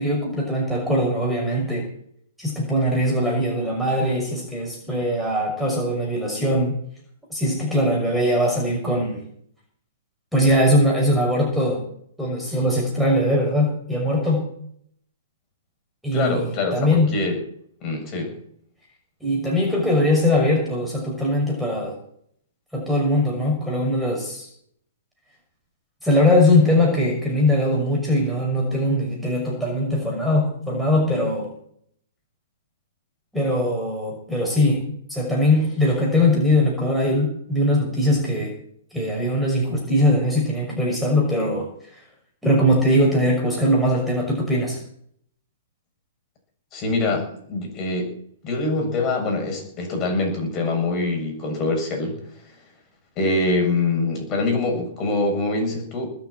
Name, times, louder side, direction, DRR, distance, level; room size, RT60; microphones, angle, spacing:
voice 1, 0.0-1.9 2.4-6.8 7.3-9.2 10.3-11.8 12.2-14.5 16.0-16.4 16.7-17.1 19.2-22.0 22.7-24.5 26.0-31.5 33.3-38.5 38.9-42.0 42.4-44.8, left 1 dB, ahead, -3 dB, 5.9 m, -21 dB
voice 2, 16.1-17.4 17.8-18.3 46.7-48.1 48.4-52.2 53.2-56.1, left 2 dB, 25° left, 3 dB, 7.2 m, -24 dB
20.0 x 7.3 x 8.7 m, 0.67 s
hypercardioid pair, 145°, 0 cm